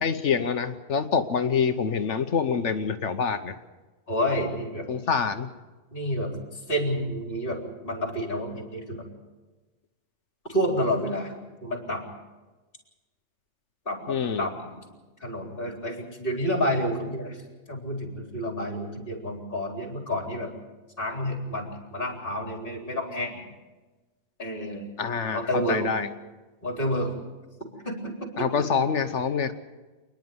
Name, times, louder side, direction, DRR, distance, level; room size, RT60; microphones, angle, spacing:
voice 1, 0.0-3.6 4.9-5.5 14.1-14.5 25.0-26.1 28.4-29.5, left 6 dB, 70° left, 9 dB, 1.2 m, -26 dB
voice 2, 4.1-4.9 5.9-6.3 6.7-9.0 10.4-11.3 11.6-12.0 13.9-14.8 15.2-17.4 17.7-20.5 21.0-23.4 24.4-24.9 25.3-25.9 26.6-27.1 27.6-28.5, equal, 45° left, 1 dB, 4.2 m, -29 dB
27.5 x 10.5 x 9.6 m, 1.2 s
omnidirectional pair, 1.3 m